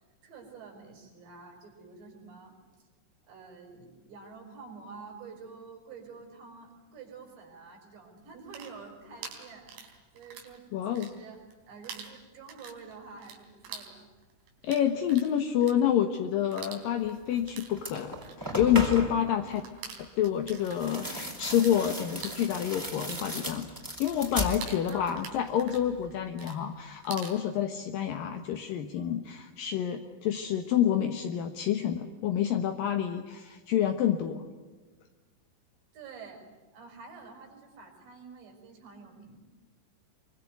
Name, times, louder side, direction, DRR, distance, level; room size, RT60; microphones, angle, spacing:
voice 1, 0.2-2.5 3.3-14.1 19.3-19.7 24.9-25.2 28.2-28.3 35.9-36.5 36.7-39.4, right 5 dB, 60° right, 3 dB, 7.9 m, -48 dB
sound 1, 8.3-10.6 10.8-11.6 11.8-21.8 22.0-27.4, right 5 dB, 80° right, 6.2 m, -46 dB
voice 2, 10.7-11.1 14.6-19.6 20.2-23.7 24.0-34.4, left 10 dB, 70° left, 5 dB, 2.2 m, -28 dB
sound 2, 17.3-17.5 17.8-19.3 20.6-25.2 25.5-26.1, equal, 5° right, 3.6 m, -36 dB
25.5 x 24.5 x 9.3 m, 1.3 s
omnidirectional pair, 5.5 m